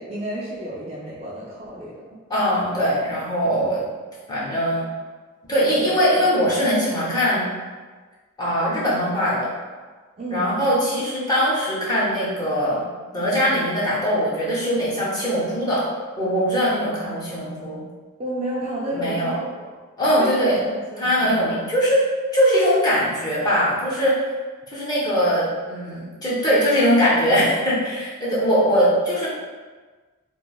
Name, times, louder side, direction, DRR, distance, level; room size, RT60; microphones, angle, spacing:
voice 1, 0.0-2.2 10.2-10.6 18.2-19.7 20.0-21.5, right 1 dB, 30° right, -6 dB, 0.4 m, -31 dB
voice 2, 2.3-3.9 4.3-4.9 5.5-7.5 8.4-9.5 10.3-12.9 13.1-15.9 16.2-17.8 18.9-19.3 20.0-20.6 21.0-24.3 24.7-29.3, equal, 20° left, -8 dB, 0.7 m, -21 dB
3.0 x 2.4 x 2.3 m, 1.4 s
head